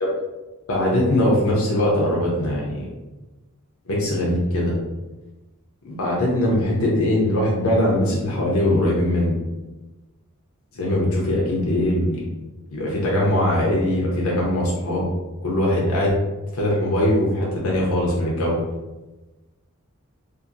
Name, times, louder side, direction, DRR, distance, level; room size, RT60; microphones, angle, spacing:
voice 1, 0.7-2.9 3.9-4.8 5.8-9.4 10.7-12.3 12.7-15.1 15.4-16.1 16.5-18.5, left 1 dB, 70° left, -4 dB, 0.6 m, -21 dB
2.7 x 2.5 x 2.5 m, 1.1 s
head